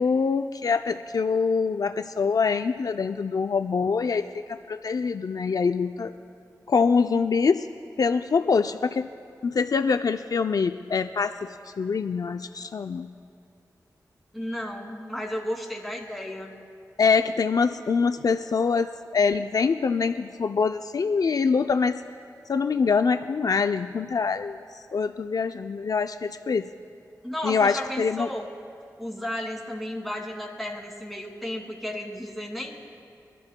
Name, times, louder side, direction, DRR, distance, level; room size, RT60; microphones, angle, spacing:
voice 1, 0.0-6.1 6.7-7.7 8.0-9.1 9.4-13.1 17.0-22.0 22.5-26.7 27.4-28.3, left 5 dB, 60° left, 8 dB, 0.4 m, -24 dB
voice 2, 14.3-16.5 27.2-28.5 29.0-32.8, left 1 dB, ahead, 0 dB, 2.6 m, -33 dB
24.0 x 12.5 x 2.2 m, 2.5 s
cardioid pair, 40°, 7 cm